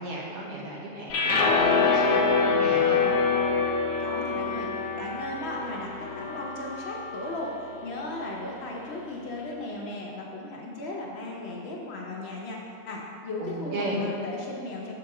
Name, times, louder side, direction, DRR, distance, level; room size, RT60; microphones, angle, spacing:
voice 1, 0.0-3.1 13.4-14.0, right 2 dB, 80° right, -4 dB, 1.5 m, -34 dB
sound 1, 1.1-7.4, left 4 dB, 90° left, 1.1 m, -25 dB
voice 2, 4.0-12.6 12.9-14.9, left 2 dB, 60° left, -2 dB, 0.7 m, -36 dB
5.8 x 3.9 x 4.7 m, 2.6 s
omnidirectional pair, 1.5 m